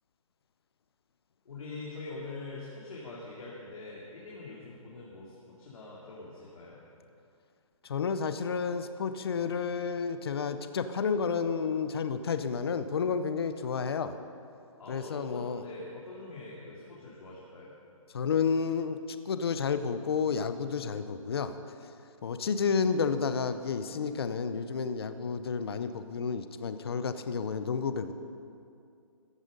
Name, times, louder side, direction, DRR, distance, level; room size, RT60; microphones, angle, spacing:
voice 1, 1.4-6.8 14.8-17.8, left 3 dB, 75° left, -6 dB, 3.0 m, -44 dB
voice 2, 7.9-14.2 14.9-15.6 18.1-19.0 19.3-21.6 22.2-28.1, left 6 dB, 45° left, 11 dB, 0.6 m, -31 dB
15.0 x 11.0 x 5.3 m, 2.5 s
hypercardioid pair, 175°, 18 cm